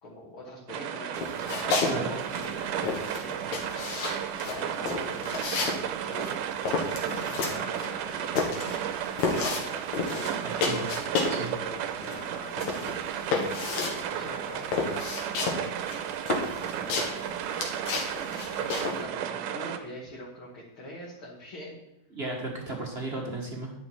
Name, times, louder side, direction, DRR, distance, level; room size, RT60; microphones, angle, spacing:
voice 1, 0.0-3.7 4.5-5.7 6.0-8.4 9.3-9.9 11.6-13.0 14.1-15.0 16.5-17.5 18.6-21.8, left 1 dB, 40° left, -5 dB, 2.7 m, -43 dB
sound 1, 0.7-19.8, right 9 dB, 80° right, 2.3 m, -33 dB
sound 2, 1.1-2.0 2.2-11.5 11.8-19.0, left 4 dB, 65° left, 3.0 m, -31 dB
voice 2, 1.8-2.2 10.4-10.9 11.3-11.5 22.1-23.7, right 2 dB, 35° right, -1 dB, 1.0 m, -34 dB
11.0 x 9.9 x 4.6 m, 0.83 s
omnidirectional pair, 3.7 m